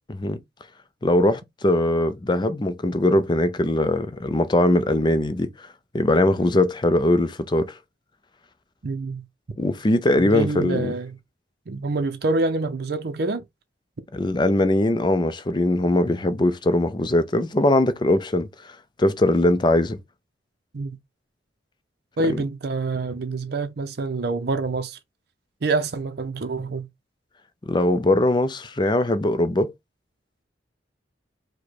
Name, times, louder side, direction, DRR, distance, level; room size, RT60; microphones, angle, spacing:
voice 1, 0.1-0.4 1.0-5.7 5.9-7.7 9.6-10.9 14.1-18.5 19.0-20.0 22.3-22.4 27.7-29.7, left 1 dB, 25° left, 0.5 m, -21 dB
voice 2, 8.8-9.2 10.1-11.2 11.7-13.4 20.7-21.0 22.2-25.0 25.6-26.9, right 3 dB, 55° right, 0.6 m, -26 dB
4.9 x 2.2 x 4.1 m
head